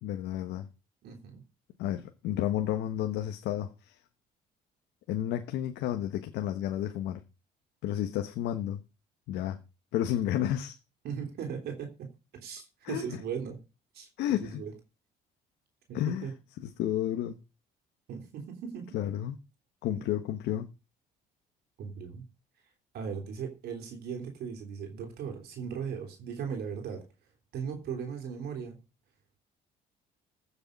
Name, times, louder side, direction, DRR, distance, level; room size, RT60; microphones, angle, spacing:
voice 1, 0.0-0.7 1.8-4.0 5.1-7.2 7.8-8.8 9.3-9.6 9.9-10.7 12.8-13.0 14.2-14.6 15.9-16.3 16.6-17.4 18.9-19.3 19.8-20.7, left 11 dB, 85° left, 1.3 m, -31 dB
voice 2, 1.0-1.4 11.0-12.1 12.4-13.6 13.9-14.7 15.9-16.3 18.1-18.9 19.9-20.0 21.8-22.2 22.9-27.1 27.5-28.8, right 7 dB, 70° right, 3.4 m, -38 dB
15.5 x 6.9 x 5.3 m
cardioid pair, 110°, 17 cm